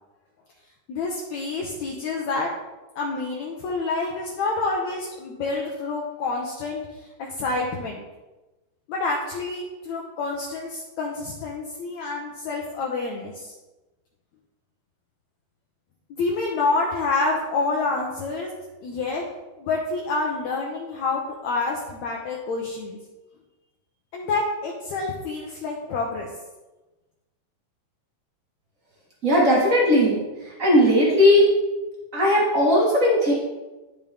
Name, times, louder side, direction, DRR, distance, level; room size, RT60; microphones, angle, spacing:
voice 1, 0.9-2.5 3.0-6.8 7.2-8.0 8.9-13.5 16.2-18.5 18.8-19.2 19.6-23.0 24.1-26.3, left 3 dB, 70° left, -1 dB, 1.8 m, -28 dB
voice 2, 29.2-30.2 30.6-31.4 32.1-33.3, left 1 dB, 70° right, -4 dB, 0.7 m, -17 dB
11.0 x 5.2 x 3.5 m, 1.1 s
omnidirectional pair, 4.1 m